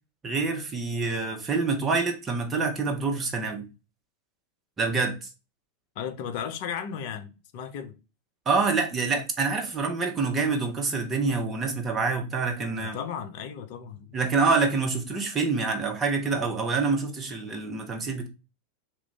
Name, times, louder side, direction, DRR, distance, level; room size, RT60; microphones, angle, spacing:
voice 1, 0.2-3.6 4.8-5.3 8.5-13.0 14.1-18.3, right 4 dB, 20° right, 0.8 m, -26 dB
voice 2, 6.0-8.0 12.8-14.1, left 8 dB, 45° left, 0.5 m, -35 dB
3.0 x 2.5 x 3.4 m
figure-of-eight pair, 90°, 0 cm